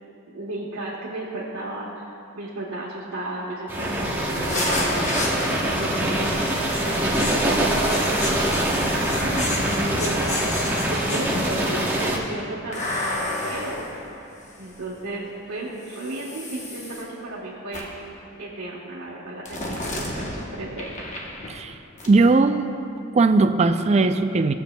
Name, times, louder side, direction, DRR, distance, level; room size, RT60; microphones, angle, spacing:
voice 1, 0.3-2.1 2.3-10.5 10.9-13.8 14.1-14.3 14.6-17.9 18.4-21.1, right 1 dB, 85° right, -7 dB, 1.1 m, -34 dB
sound 1, 3.7-12.2, right 1 dB, 10° right, 0.9 m, -24 dB
sound 2, 4.5-6.0 6.7-11.7 12.7-14.9 15.8-17.0 17.7-18.1 19.5-21.7 22.0-22.1, left 2 dB, 35° left, 0.9 m, -31 dB
voice 2, 22.1-22.7 23.1-24.5, right 3 dB, 30° right, 8 dB, 0.3 m, -18 dB
17.5 x 7.0 x 2.2 m, 2.5 s
head